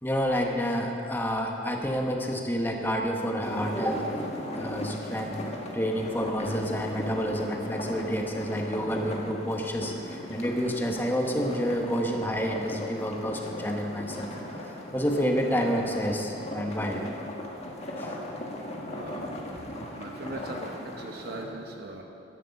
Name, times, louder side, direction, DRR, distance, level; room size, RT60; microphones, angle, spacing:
voice 1, 0.0-4.1 4.5-5.4 5.7-14.3 14.7-17.0 18.0-18.1, equal, 10° left, 1 dB, 1.2 m, -29 dB
sound 1, 3.4-21.4, left 1 dB, 35° left, 1.6 m, -37 dB
voice 2, 18.9-19.2 20.0-22.0, right 2 dB, 55° right, 1 dB, 1.0 m, -40 dB
12.0 x 10.5 x 7.1 m, 2.9 s
head